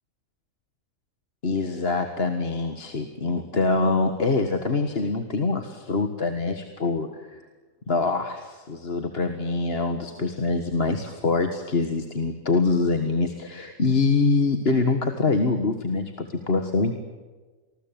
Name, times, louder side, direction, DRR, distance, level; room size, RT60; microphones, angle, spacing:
voice 1, 1.4-7.4 7.9-16.9, left 3 dB, 45° left, 7 dB, 1.9 m, -24 dB
28.0 x 20.5 x 9.3 m, 1.3 s
omnidirectional pair, 1.4 m